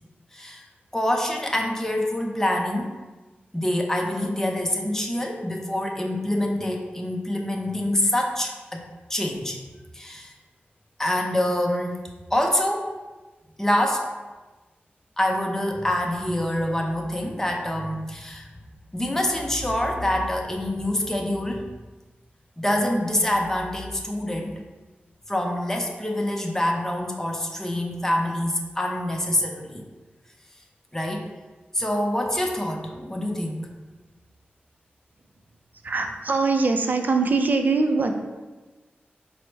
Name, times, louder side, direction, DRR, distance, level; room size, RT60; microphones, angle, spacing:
voice 1, 0.3-0.7 0.9-2.9 3.5-9.6 9.9-10.3 11.0-12.9 13.6-14.1 15.2-18.5 18.9-21.7 22.6-24.6 25.3-29.9 30.9-31.3 31.7-33.7, left 1 dB, 10° left, 1 dB, 0.6 m, -26 dB
voice 2, 35.8-38.2, right 3 dB, 50° right, 5 dB, 0.4 m, -22 dB
4.6 x 2.1 x 4.4 m, 1.2 s
wide cardioid pair, 85°, 4 cm